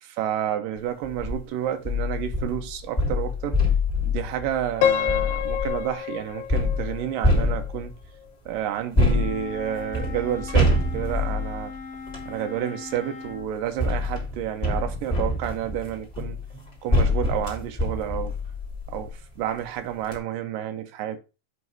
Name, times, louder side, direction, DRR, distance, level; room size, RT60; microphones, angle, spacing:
voice 1, 0.0-3.6 4.1-7.9 8.5-11.7 12.3-16.4 16.8-18.3 18.9-21.2, right 10 dB, 75° right, 2.3 m, -30 dB
sound 1, 1.0-1.4 1.8-5.9 6.5-8.0 8.9-12.3 13.3-19.2 19.6-19.7 20.0-20.2, left 2 dB, 15° left, 1.4 m, -26 dB
Piano, 4.8-7.8, left 9 dB, 80° left, 2.3 m, -27 dB
Wind instrument woodwind instrument, 9.0-13.5, left 5 dB, 60° left, 2.0 m, -39 dB
7.7 x 3.1 x 5.3 m
omnidirectional pair, 4.3 m